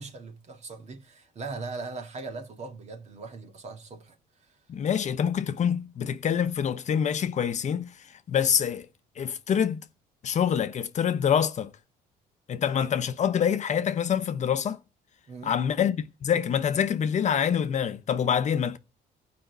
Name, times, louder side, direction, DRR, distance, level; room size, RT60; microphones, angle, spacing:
voice 1, 0.0-4.5 15.3-15.5, right 3 dB, 40° right, 1.8 m, -40 dB
voice 2, 4.7-8.9 9.2-9.8 10.2-11.7 12.5-14.8 15.4-18.8, left 8 dB, 45° left, 0.8 m, -26 dB
15.0 x 5.2 x 8.0 m
cardioid pair, 110°, 17 cm